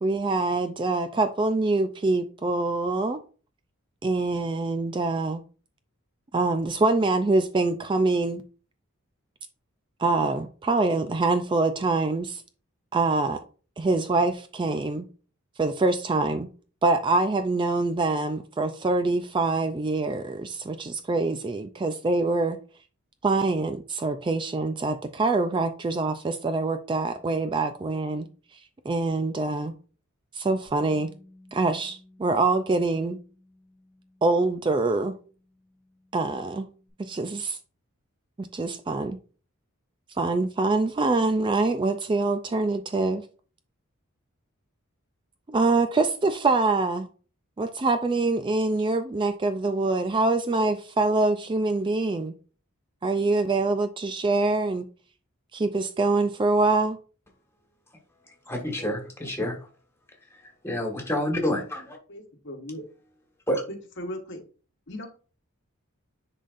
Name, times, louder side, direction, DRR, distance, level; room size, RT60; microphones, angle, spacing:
voice 1, 0.0-3.2 4.0-5.4 6.3-8.4 10.0-12.4 12.9-13.4 13.8-15.1 15.6-16.5 16.8-22.6 23.2-28.3 28.9-29.7 30.3-31.1 31.5-33.2 34.2-35.1 36.1-36.7 37.0-37.6 38.4-39.2 40.2-43.2 45.5-47.1 47.6-52.3 53.0-54.9 55.5-57.0, right 3 dB, 25° right, 0.3 m, -25 dB
Bass guitar, 30.7-36.9, left 1 dB, 70° right, 3.5 m, -57 dB
voice 2, 58.5-59.6 60.3-60.4 60.6-62.0 63.5-63.6, left 1 dB, 10° left, 1.6 m, -28 dB
voice 3, 62.1-62.8 63.7-64.4 64.9-65.1, left 1 dB, 55° left, 1.2 m, -37 dB
9.9 x 4.0 x 2.5 m
head